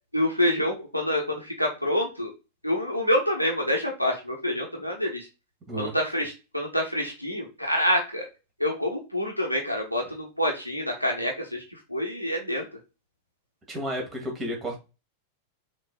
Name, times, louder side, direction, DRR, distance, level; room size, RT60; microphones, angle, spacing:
voice 1, 0.1-2.3 2.6-5.3 5.7-8.3 8.6-11.6 11.9-12.6, left 1 dB, 90° right, 1 dB, 1.1 m, -27 dB
voice 2, 13.7-14.8, equal, 20° right, 1 dB, 2.0 m, -32 dB
6.2 x 3.2 x 2.3 m, 0.29 s
figure-of-eight pair, 90°, 0 cm